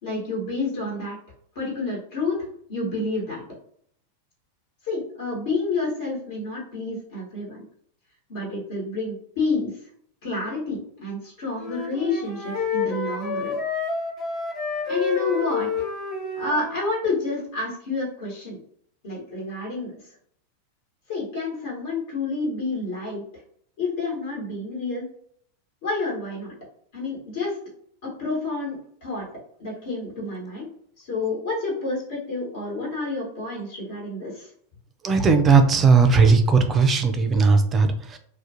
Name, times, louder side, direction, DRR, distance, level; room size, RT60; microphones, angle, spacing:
voice 1, 0.0-1.2 1.5-3.4 4.8-7.6 8.3-9.8 10.2-13.6 14.9-15.8 16.3-18.6 19.0-20.1 21.1-23.2 23.8-25.1 25.8-26.5 26.9-27.6 28.0-29.3 29.6-30.7 31.0-34.5, left 3 dB, 50° left, -4 dB, 1.1 m, -29 dB
Wind instrument woodwind instrument, 11.5-16.8, left 5 dB, 25° left, 0.7 m, -29 dB
voice 2, 35.0-38.2, right 4 dB, 20° right, 7 dB, 0.4 m, -17 dB
2.3 x 2.1 x 2.7 m, 0.63 s
figure-of-eight pair, 90°, 0 cm